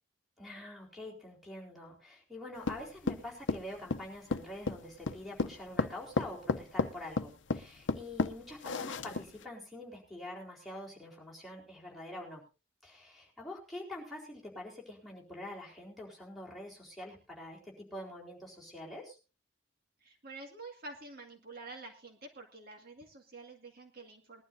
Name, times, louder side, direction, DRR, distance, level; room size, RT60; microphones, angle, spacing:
voice 1, 0.4-12.4 12.8-19.2, left 1 dB, ahead, -4 dB, 4.2 m, -46 dB
sound 1, 2.7-9.4, left 3 dB, 90° left, 0.7 m, -33 dB
voice 2, 20.0-24.4, right 2 dB, 55° right, 3 dB, 2.1 m, -48 dB
20.5 x 12.0 x 2.7 m, 0.31 s
head